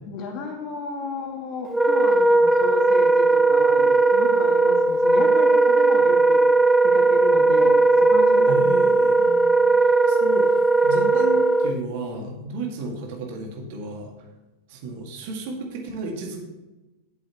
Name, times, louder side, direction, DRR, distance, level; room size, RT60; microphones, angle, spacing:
voice 1, 0.0-6.4 6.8-8.8 9.2-9.8, left 3 dB, 40° left, 2 dB, 1.9 m, -34 dB
Wind instrument woodwind instrument, 1.7-11.8, right 3 dB, 5° right, 0.4 m, -18 dB
voice 2, 8.5-9.3 9.7-9.8 10.1-10.5 10.8-14.1 14.7-16.4, right 2 dB, 50° right, 1 dB, 2.0 m, -32 dB
11.5 x 7.6 x 3.0 m, 1.1 s
figure-of-eight pair, 90°, 0 cm